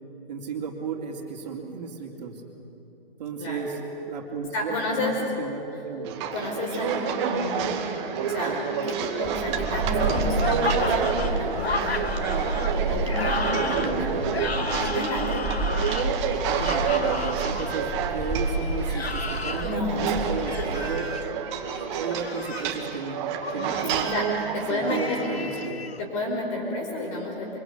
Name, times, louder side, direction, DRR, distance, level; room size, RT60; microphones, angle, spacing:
voice 1, 0.3-2.4 3.2-3.8 4.1-6.1 13.6-14.2 16.3-19.7 19.9-21.2 21.7-23.2 23.5-24.1 24.7-25.8, right 5 dB, 45° right, 1 dB, 3.6 m, -34 dB
voice 2, 4.5-5.2 6.3-14.2 14.7-15.5 19.6-20.1 24.0-25.3 26.0-27.6, left 2 dB, 30° left, 0 dB, 5.1 m, -31 dB
sound 1, 6.0-25.7, right 6 dB, 30° right, 2.2 m, -29 dB
Wind, 9.2-20.9, right 3 dB, 10° right, 5.8 m, -30 dB
sound 2, 10.0-17.8 18.8-19.8 20.4-21.2 22.0-22.8 23.4-24.0 24.9-26.0, left 4 dB, 85° left, 1.4 m, -33 dB
25.0 x 24.5 x 8.3 m, 2.9 s
figure-of-eight pair, 140°, 30 cm